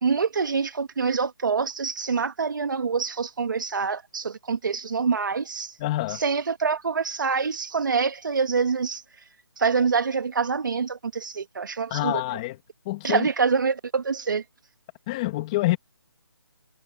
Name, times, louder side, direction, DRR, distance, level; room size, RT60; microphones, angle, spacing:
voice 1, 0.0-5.7 6.1-9.0 9.6-12.4 13.0-14.4, right 5 dB, 50° right, 2.4 m, -26 dB
voice 2, 5.8-6.2 11.9-12.6 12.9-13.3 15.1-15.8, left 18 dB, 15° left, 2.7 m, -26 dB
hypercardioid pair, 175°, 14 cm